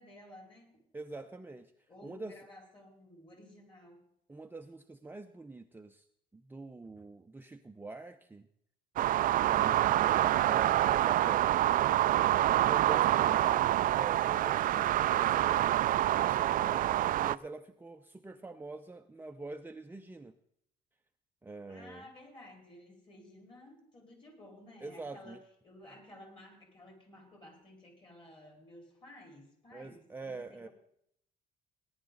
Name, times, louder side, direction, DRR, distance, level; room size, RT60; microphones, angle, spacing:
voice 1, 0.0-0.8 1.9-4.0 9.7-10.1 13.0-14.1 21.7-30.7, left 1 dB, 30° left, 1 dB, 4.9 m, -54 dB
voice 2, 0.9-1.7 2.0-2.4 4.3-6.1 6.3-8.5 9.4-11.7 12.5-13.4 14.0-15.7 16.1-20.3 21.4-22.1 24.8-25.4 29.7-30.7, right 3 dB, 10° right, 5 dB, 0.6 m, -45 dB
sound 1, 9.0-17.4, right 13 dB, 55° right, 0.4 m, -27 dB
18.0 x 10.5 x 3.9 m, 0.72 s
cardioid pair, 110°, 17 cm